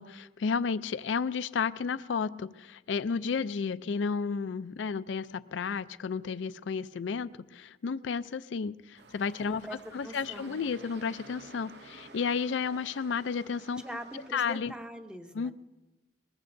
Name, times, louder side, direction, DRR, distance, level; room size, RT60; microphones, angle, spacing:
voice 1, 0.0-9.7 9.9-13.8 14.3-14.7 15.3-15.5, left 5 dB, 80° left, 15 dB, 0.4 m, -32 dB
sound 1, 9.0-14.5, right 2 dB, 60° right, 0.8 m, -52 dB
voice 2, 9.4-10.6 13.8-15.5, equal, 5° right, 6 dB, 0.8 m, -43 dB
21.0 x 20.5 x 2.6 m, 1.1 s
head